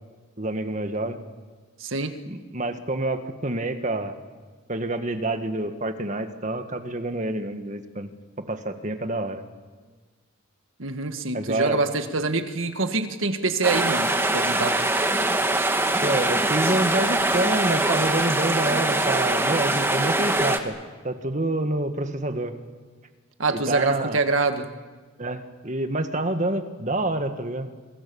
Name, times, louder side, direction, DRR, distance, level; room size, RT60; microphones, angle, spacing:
voice 1, 0.4-1.2 2.3-4.1 4.7-8.1 8.4-9.4 11.3-11.8 16.0-20.8 21.0-22.5 23.5-24.2 25.2-27.7, right 2 dB, 35° right, 8 dB, 1.8 m, -27 dB
voice 2, 1.8-2.1 10.8-14.8 23.4-24.7, right 3 dB, 75° right, 8 dB, 1.7 m, -25 dB
sound 1, 13.6-20.6, right 2 dB, 10° right, 1.5 m, -23 dB
27.5 x 25.0 x 7.1 m, 1.4 s
head